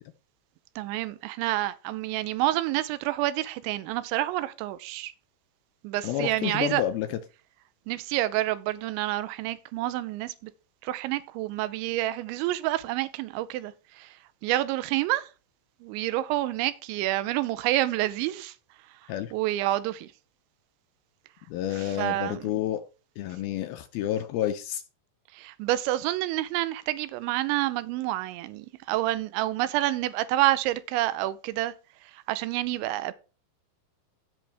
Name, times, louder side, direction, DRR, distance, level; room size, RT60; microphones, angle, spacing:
voice 1, 0.8-5.1 5.8-6.8 7.9-10.5 10.8-14.2 14.4-15.3 15.8-18.5 19.3-20.1 21.7-22.4 25.3-31.7 32.1-33.1, right 16 dB, 90° right, 3.1 m, -28 dB
voice 2, 6.0-7.2 19.1-19.3 21.5-22.8 23.2-24.8, left 11 dB, 80° left, 2.2 m, -29 dB
15.5 x 6.1 x 3.4 m
omnidirectional pair, 5.2 m